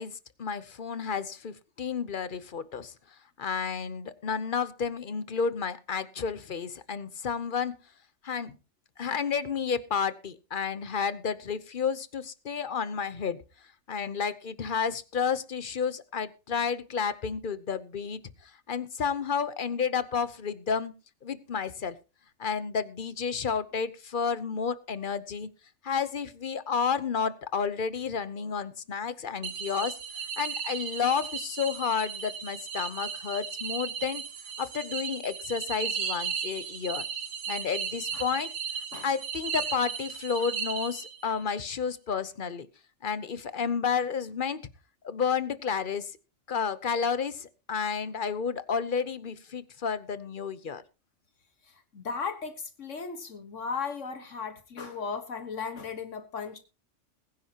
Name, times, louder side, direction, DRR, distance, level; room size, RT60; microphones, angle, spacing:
voice 1, 0.0-2.9 3.4-7.8 8.2-8.5 9.0-13.4 13.9-20.9 21.2-22.0 22.4-25.5 25.8-30.0 30.4-34.2 34.6-37.0 37.5-38.5 39.0-42.7 43.0-44.7 45.0-46.1 46.5-50.8, left 6 dB, 45° left, 15 dB, 1.0 m, -31 dB
sound 1, 29.4-41.4, right 7 dB, 85° right, 1.5 m, -36 dB
voice 2, 51.6-56.6, left 5 dB, 75° left, 8 dB, 1.7 m, -36 dB
21.0 x 10.0 x 2.9 m, 0.31 s
omnidirectional pair, 1.3 m